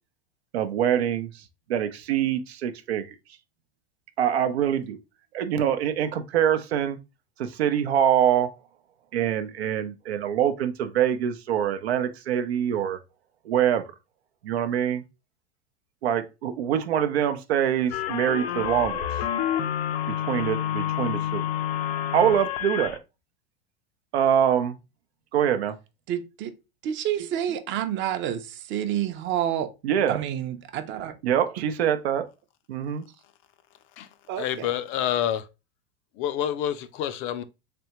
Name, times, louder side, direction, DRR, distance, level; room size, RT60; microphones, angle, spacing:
voice 1, 0.5-1.3 1.7-3.0 4.2-5.0 5.3-7.0 7.4-8.5 9.1-13.0 13.5-13.8 14.4-15.0 16.0-19.0 20.1-21.5 22.1-23.0 24.1-24.8 25.3-25.7 29.8-30.2 31.2-32.3 32.7-33.0, right 9 dB, 90° right, 0.6 m, -24 dB
sound 1, 17.9-23.0, left 10 dB, 85° left, 0.6 m, -28 dB
voice 2, 26.1-26.5 26.8-29.7 30.1-31.2 34.3-34.7, right 10 dB, 40° right, 0.6 m, -29 dB
voice 3, 34.4-35.5 36.2-37.4, left 10 dB, 40° left, 0.4 m, -28 dB
3.4 x 3.3 x 2.9 m
supercardioid pair, 115°, 31 cm